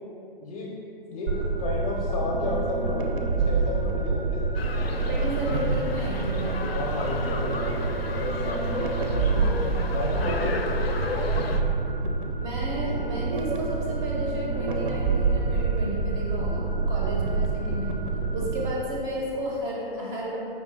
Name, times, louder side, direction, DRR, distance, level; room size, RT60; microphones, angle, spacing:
voice 1, 0.4-0.7 1.1-5.1 6.7-8.9 9.9-11.3, left 2 dB, 40° left, -3 dB, 0.5 m, -32 dB
sound 1, 1.3-18.7, right 4 dB, 60° right, 0.5 m, -27 dB
sound 2, 4.5-11.6, left 3 dB, 85° left, 0.5 m, -34 dB
voice 2, 5.1-6.7 9.1-9.7 12.4-17.9 18.3-20.4, equal, 10° right, -3 dB, 0.4 m, -33 dB
5.1 x 3.2 x 3.1 m, 2.8 s
figure-of-eight pair, 130°, 29 cm